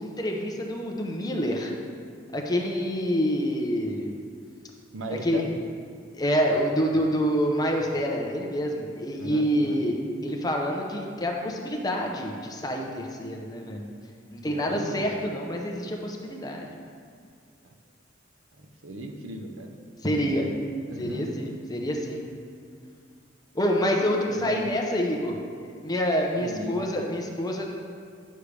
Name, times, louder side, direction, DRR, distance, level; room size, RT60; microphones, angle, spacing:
voice 1, 0.0-1.7 2.3-4.1 5.2-5.4 6.1-13.9 14.3-16.8 20.0-20.4 21.0-22.2 23.5-25.4 25.8-27.7, equal, 20° left, 0 dB, 0.8 m, -27 dB
voice 2, 4.9-5.6 9.1-9.8 14.5-15.2 17.6-17.7 18.6-19.7 20.0-20.6 20.9-21.4 24.3-24.8 26.4-27.1, right 1 dB, 90° right, 4 dB, 0.8 m, -37 dB
10.0 x 6.6 x 3.4 m, 2.2 s
head